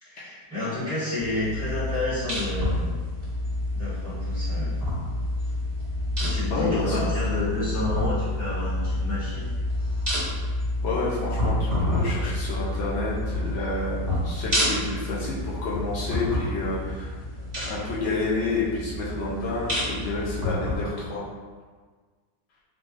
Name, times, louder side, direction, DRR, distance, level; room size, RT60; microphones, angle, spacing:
voice 1, 0.0-3.0 3.7-4.8 6.2-9.5 9.8-10.2, left 2 dB, 25° left, -13 dB, 1.6 m, -30 dB
sound 1, 1.2-20.8, left 1 dB, 25° right, 1.2 m, -29 dB
voice 2, 6.5-7.0 10.8-17.2 17.6-21.3, left 3 dB, 75° left, -7 dB, 0.5 m, -29 dB
3.6 x 3.1 x 2.5 m, 1.5 s
omnidirectional pair, 1.9 m